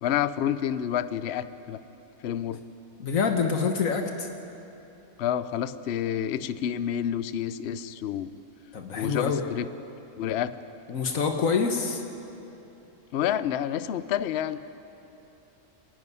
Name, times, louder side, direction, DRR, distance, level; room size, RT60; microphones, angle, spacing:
voice 1, 0.0-1.8 2.2-2.6 5.2-8.3 8.9-9.7 10.2-10.6 13.1-14.6, left 10 dB, 60° left, 14 dB, 0.8 m, -29 dB
voice 2, 3.0-4.3 8.7-9.4 10.9-12.0, left 5 dB, 80° left, 4 dB, 1.6 m, -26 dB
28.5 x 11.0 x 9.8 m, 2.9 s
omnidirectional pair, 1.4 m